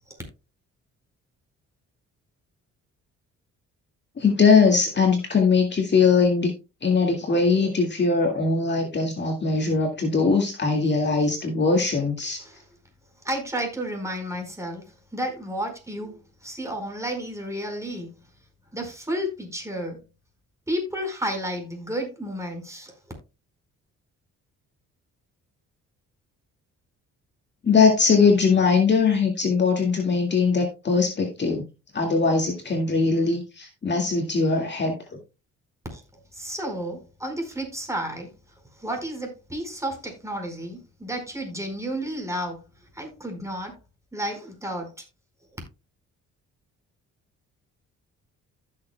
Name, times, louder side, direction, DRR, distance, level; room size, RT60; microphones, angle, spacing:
voice 1, 4.2-6.5 6.8-12.4 27.6-31.6 31.9-35.0, left 4 dB, 35° left, 2.0 m, -21 dB
voice 2, 13.2-14.8 15.1-18.1 18.7-20.0 20.7-22.9 35.9-36.0 36.3-38.3 38.8-42.6 42.9-43.8 44.1-44.9, equal, 10° right, 4.6 m, -31 dB
15.0 x 6.9 x 2.2 m
cardioid pair, 90°, 30 cm